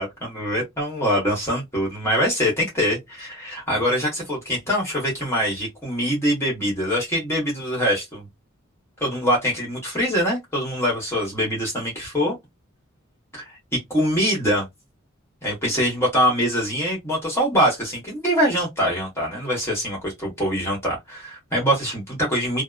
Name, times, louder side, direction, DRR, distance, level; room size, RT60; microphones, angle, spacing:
voice 1, 0.0-8.3 9.0-12.3 13.3-14.7 15.4-22.6, equal, 15° left, 1.2 m, -23 dB
2.8 x 2.0 x 2.3 m
head